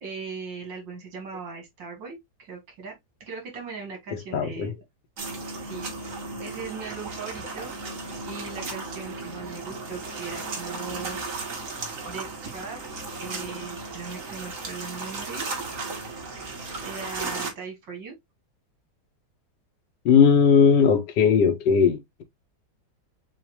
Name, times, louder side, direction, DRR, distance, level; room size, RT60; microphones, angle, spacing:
voice 1, 0.0-2.9 3.2-4.7 5.6-6.1 6.4-7.7 8.2-11.2 12.1-12.8 13.2-15.4 16.8-18.1, right 5 dB, 75° right, 2.5 m, -39 dB
voice 2, 4.3-4.7 20.0-22.2, left 6 dB, 70° left, 1.5 m, -18 dB
sound 1, 5.2-17.5, right 3 dB, 45° right, 1.8 m, -35 dB
7.1 x 2.5 x 2.9 m
omnidirectional pair, 2.0 m